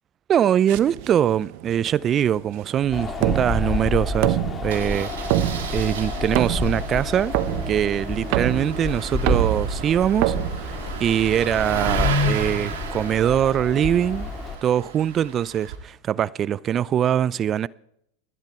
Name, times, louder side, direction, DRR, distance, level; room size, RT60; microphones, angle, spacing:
voice 1, 0.3-5.4 5.7-7.3 7.7-10.3 10.6-14.3 14.6-17.7, right 10 dB, 35° right, 0.5 m, -22 dB
sound 1, 0.7-11.3, right 14 dB, 60° right, 1.0 m, -28 dB
Engine starting, 2.8-3.0 3.3-3.4 3.6-3.8 4.7-15.8, right 2 dB, 80° right, 2.8 m, -32 dB
Wind, 2.9-14.6, left 3 dB, 25° left, 2.5 m, -30 dB
29.0 x 10.5 x 4.4 m
hypercardioid pair, 105°, 0 cm